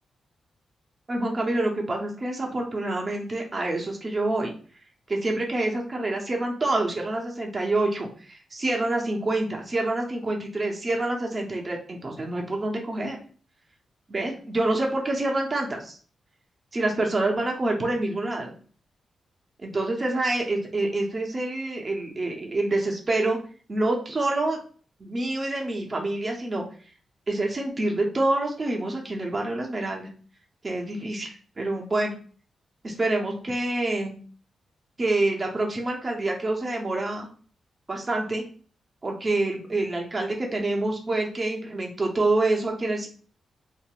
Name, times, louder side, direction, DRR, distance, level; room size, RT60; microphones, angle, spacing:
voice 1, 1.1-4.5 5.1-13.2 14.1-16.0 16.7-18.5 19.6-23.4 23.7-24.6 25.0-26.6 27.3-30.1 30.6-32.1 32.8-34.2 35.0-37.3 37.9-38.4 39.0-43.1, right 2 dB, 40° right, 1 dB, 0.8 m, -27 dB
2.9 x 2.5 x 2.4 m, 0.42 s
supercardioid pair, 55°, 0 cm